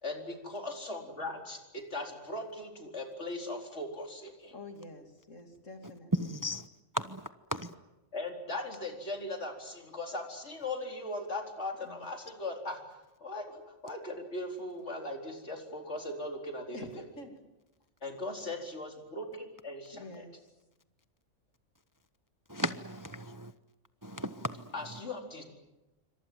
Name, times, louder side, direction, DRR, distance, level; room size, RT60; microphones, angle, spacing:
voice 1, 0.0-4.5 8.1-12.8 13.2-17.0 18.0-20.2 24.7-25.5, left 2 dB, 65° left, 4.6 m, -39 dB
voice 2, 4.5-6.4 11.8-12.1 16.7-17.4 19.9-20.3, left 2 dB, 90° left, 3.3 m, -47 dB
voice 3, 6.2-6.7 6.9-7.2 7.5-7.7 22.5-23.5 24.0-24.6, left 1 dB, 20° right, 0.8 m, -36 dB
27.5 x 25.0 x 7.8 m
omnidirectional pair, 1.3 m